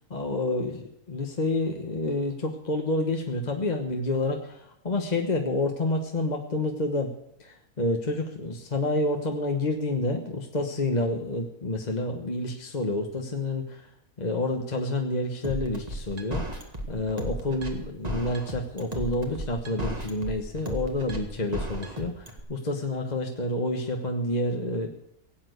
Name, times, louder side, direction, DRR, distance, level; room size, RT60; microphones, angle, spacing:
voice 1, 0.1-7.1 7.4-13.8 14.2-16.6 16.9-24.9, left 2 dB, 30° left, 3 dB, 1.3 m, -29 dB
sound 1, 15.4-22.4, right 1 dB, 25° right, 1.9 m, -34 dB
17.0 x 8.8 x 8.1 m, 0.78 s
omnidirectional pair, 1.5 m